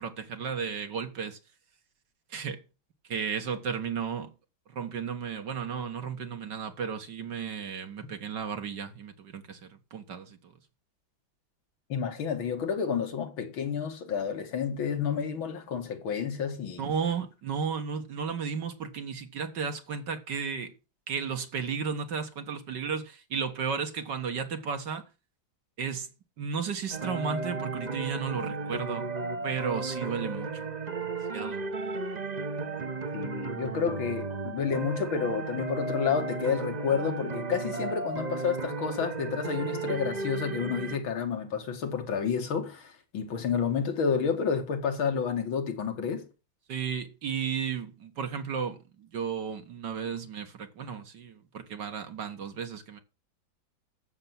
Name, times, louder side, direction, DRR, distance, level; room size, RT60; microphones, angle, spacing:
voice 1, 0.0-1.4 2.3-2.6 3.1-4.3 4.7-10.5 16.8-20.7 21.1-25.0 25.8-26.1 26.4-29.1 29.4-30.7 31.3-31.6 46.7-53.0, right 6 dB, 60° right, 2.1 m, -34 dB
voice 2, 11.9-16.8 33.1-46.3, left 6 dB, 85° left, 2.6 m, -30 dB
sound 1, 26.9-41.0, right 3 dB, 30° right, 0.9 m, -34 dB
14.5 x 6.9 x 6.0 m
omnidirectional pair, 2.1 m